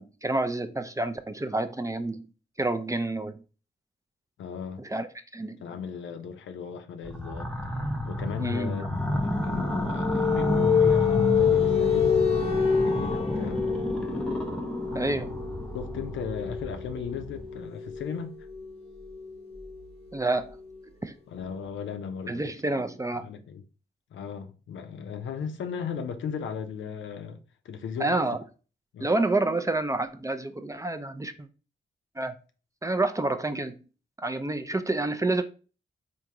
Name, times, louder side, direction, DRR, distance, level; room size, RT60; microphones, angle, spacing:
voice 1, 0.0-2.3 2.6-3.3 4.8-5.1 5.3-5.6 8.4-8.7 14.9-15.3 20.1-20.6 21.0-21.1 22.3-23.3 28.0-28.4 29.0-31.3 32.2-32.3 32.8-33.7 34.2-35.4, right 2 dB, 15° right, 0.4 m, -28 dB
voice 2, 4.4-4.8 5.6-7.5 8.0-13.7 15.7-18.3 21.3-22.4 23.2-23.6 24.1-28.2 28.9-29.1, left 7 dB, 75° left, 0.5 m, -36 dB
sound 1, 7.0-17.6, equal, 5° left, 0.8 m, -31 dB
sound 2, 9.1-20.7, left 7 dB, 30° left, 0.9 m, -28 dB
3.5 x 2.5 x 2.8 m
supercardioid pair, 45°, 20 cm